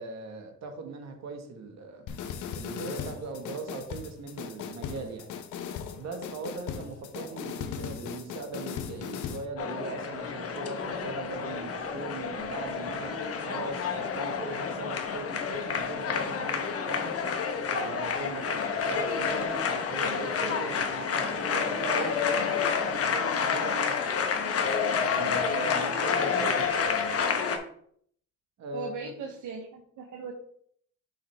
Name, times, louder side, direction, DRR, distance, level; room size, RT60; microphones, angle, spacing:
voice 1, 0.0-2.1 2.6-5.3 6.0-17.3 17.7-24.0 24.9-27.1 28.6-29.1, right 3 dB, 65° right, 4 dB, 1.5 m, -39 dB
sound 1, 2.1-9.5, left 8 dB, 80° left, 0.8 m, -38 dB
voice 2, 7.2-7.5 28.7-30.3, right 4 dB, 80° right, 1 dB, 1.0 m, -39 dB
sound 2, 9.6-27.6, left 6 dB, 50° left, 1.0 m, -29 dB
6.3 x 5.6 x 3.4 m, 0.64 s
cardioid pair, 90°, 30 cm